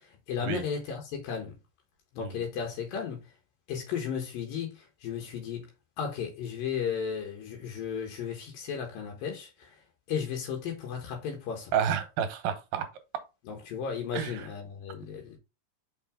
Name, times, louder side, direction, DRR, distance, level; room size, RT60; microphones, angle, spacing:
voice 1, 0.0-1.6 2.1-3.2 3.7-5.7 6.0-9.8 10.1-11.7 13.5-15.4, left 7 dB, 80° left, 3.1 m, -35 dB
voice 2, 11.7-12.9 14.1-14.5, right 8 dB, 80° right, 2.8 m, -30 dB
6.0 x 5.8 x 3.6 m
omnidirectional pair, 4.0 m